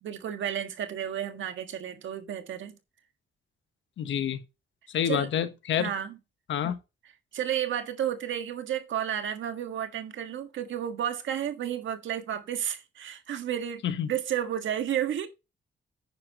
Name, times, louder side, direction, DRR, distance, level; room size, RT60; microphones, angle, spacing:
voice 1, 0.0-2.7 5.0-5.3 5.8-6.2 7.3-15.3, right 10 dB, 80° right, 1.6 m, -32 dB
voice 2, 4.0-4.4 4.9-5.9 6.5-6.8 13.8-14.1, left 9 dB, 80° left, 1.2 m, -28 dB
10.0 x 9.7 x 2.9 m
cardioid pair, 95°, 19 cm